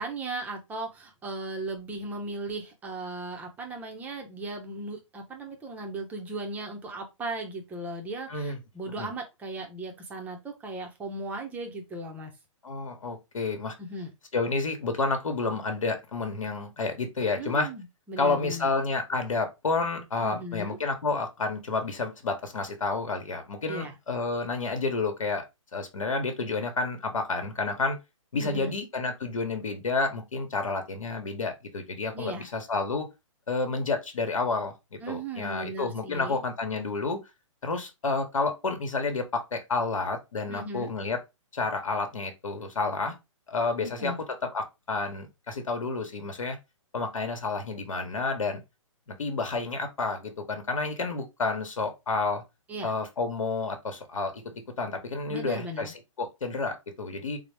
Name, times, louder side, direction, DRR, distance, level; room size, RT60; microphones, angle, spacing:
voice 1, 0.0-12.3 13.8-14.1 17.4-18.7 20.2-20.8 23.7-23.9 28.4-28.7 32.1-32.5 35.0-36.4 40.5-40.9 43.8-44.2 52.7-52.9 55.3-55.9, right 2 dB, 10° right, 0.6 m, -37 dB
voice 2, 12.6-13.7 14.3-17.7 18.2-25.4 25.7-28.0 28.3-33.1 33.5-34.7 35.1-37.2 37.6-41.2 41.5-43.2 43.5-44.1 44.5-46.6 46.9-48.6 49.1-52.4 52.8-54.4 54.8-57.4, left 3 dB, 80° left, 1.0 m, -30 dB
4.0 x 2.0 x 3.2 m
hypercardioid pair, 140°, 17 cm